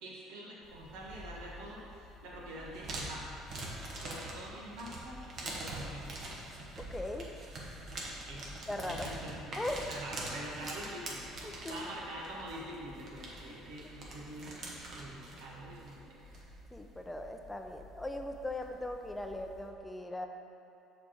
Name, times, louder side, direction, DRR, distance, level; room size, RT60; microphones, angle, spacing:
voice 1, 0.0-3.4 4.0-6.1 8.3-8.5 8.9-9.4 9.9-11.2 11.7-14.6 15.0-16.1, right 1 dB, 75° right, -4 dB, 1.3 m, -45 dB
sound 1, 0.6-19.7, right 1 dB, 50° right, 1.3 m, -45 dB
voice 2, 6.8-7.3 8.7-9.1 9.6-9.9 11.4-11.9 16.7-20.3, left 1 dB, 10° left, 4 dB, 0.6 m, -39 dB
6.7 x 3.4 x 5.8 m, 2.6 s
hypercardioid pair, 65°, 0 cm